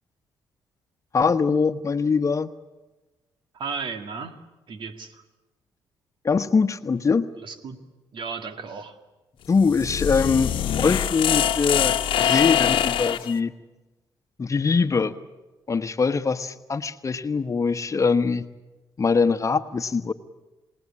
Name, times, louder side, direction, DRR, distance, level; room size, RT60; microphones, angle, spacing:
voice 1, 1.1-2.5 6.2-7.3 9.5-13.5 14.4-15.2 15.7-18.5 19.0-20.1, left 5 dB, 35° left, 10 dB, 1.2 m, -23 dB
voice 2, 3.5-4.4 4.7-5.2 7.3-7.8 8.1-9.0, right 5 dB, 65° right, 8 dB, 2.1 m, -34 dB
sound 1, 9.5-13.3, left 10 dB, 70° left, 1.1 m, -23 dB
27.5 x 18.5 x 8.6 m, 1.1 s
supercardioid pair, 65°, 9 cm